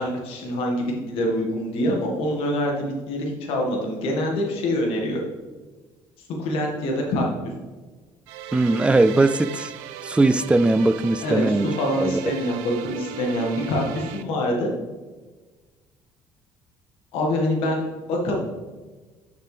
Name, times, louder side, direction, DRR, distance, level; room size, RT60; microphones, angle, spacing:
voice 1, 0.0-5.2 6.4-7.3 11.2-14.7 17.1-18.3, left 1 dB, 75° left, 1.9 m, -25 dB
sound 1, 8.3-14.2, right 10 dB, 90° right, 0.5 m, -36 dB
voice 2, 8.5-9.7 10.0-11.7 12.0-12.2, right 2 dB, 10° right, 0.3 m, -19 dB
6.7 x 6.6 x 3.4 m
cardioid pair, 90°, 9 cm